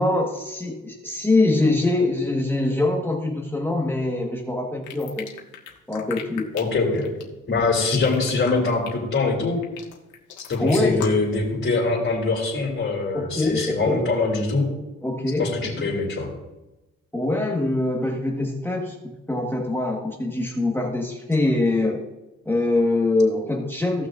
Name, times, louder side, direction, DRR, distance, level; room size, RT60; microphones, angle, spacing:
voice 1, 0.0-5.3 5.9-6.5 10.6-11.1 13.1-14.0 15.0-15.5 15.8-15.9 17.1-22.0 22.4-24.1, left 2 dB, 5° left, -1 dB, 1.4 m, -23 dB
sound 1, 4.8-11.4, left 8 dB, 90° left, 1.6 m, -37 dB
voice 2, 6.5-7.1 7.5-9.6 10.5-14.7 15.4-16.3, left 3 dB, 45° left, -4 dB, 3.1 m, -23 dB
17.0 x 6.1 x 2.5 m, 1.0 s
cardioid pair, 90°, 30 cm